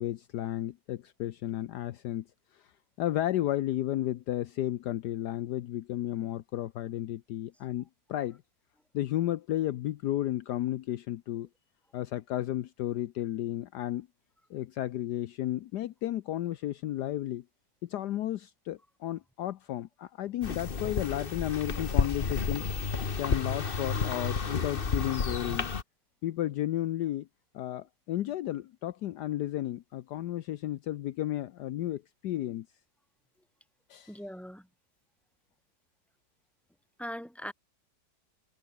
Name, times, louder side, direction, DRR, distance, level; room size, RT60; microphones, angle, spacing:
voice 1, 0.0-2.2 2.5-2.7 3.0-8.4 8.9-11.5 11.9-14.1 14.5-17.4 17.8-22.7 23.2-25.7 26.2-27.3 27.5-32.7 33.9-34.2, left 13 dB, 70° left, 1.2 m, -33 dB
sound 1, 20.4-25.8, left 5 dB, 35° left, 1.4 m, -31 dB
voice 2, 34.1-34.7 37.0-37.5, equal, ahead, 4.6 m, -40 dB
omnidirectional pair, 1.9 m